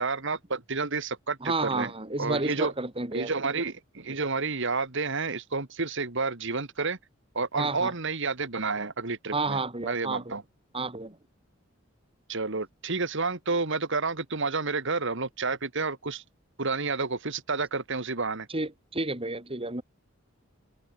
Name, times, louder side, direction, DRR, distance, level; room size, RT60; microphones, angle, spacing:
voice 1, 0.0-1.9 2.2-2.7 3.1-7.0 7.3-10.4 12.3-16.2 16.6-18.5, right 4 dB, 65° right, 2.2 m, -30 dB
voice 2, 1.4-3.3 7.6-7.9 9.3-10.4 10.7-11.2 18.5-19.8, right 3 dB, 30° right, 3.6 m, -31 dB
head